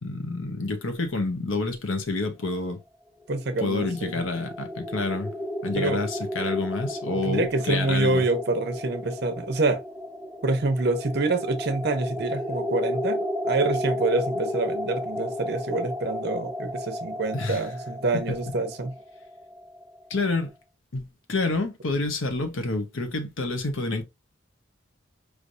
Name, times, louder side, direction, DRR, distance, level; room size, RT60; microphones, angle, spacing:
voice 1, 0.0-2.8 3.6-5.3 5.6-8.2 17.3-17.6 18.1-18.5 20.1-20.5 20.9-24.0, left 3 dB, 85° left, 0.9 m, -28 dB
sound 1, 3.3-20.1, equal, ahead, 0.4 m, -33 dB
voice 2, 3.3-4.2 5.8-6.0 7.2-9.8 10.4-13.2 13.4-18.9, right 2 dB, 55° right, 0.8 m, -26 dB
4.8 x 3.3 x 2.6 m
head